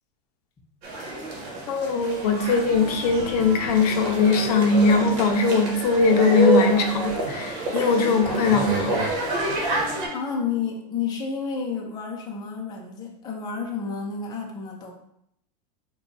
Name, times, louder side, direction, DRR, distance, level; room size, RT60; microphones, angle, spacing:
sound 1, 0.8-10.1, right 2 dB, 45° right, 1.2 m, -28 dB
voice 1, 1.7-9.0, left 4 dB, 85° left, 5 dB, 0.7 m, -21 dB
Wind instrument woodwind instrument, 2.7-10.8, right 1 dB, 10° right, 0.9 m, -41 dB
voice 2, 10.1-14.9, left 6 dB, 20° left, 0 dB, 0.6 m, -30 dB
4.7 x 2.3 x 3.3 m, 0.73 s
supercardioid pair, 155°, 20 cm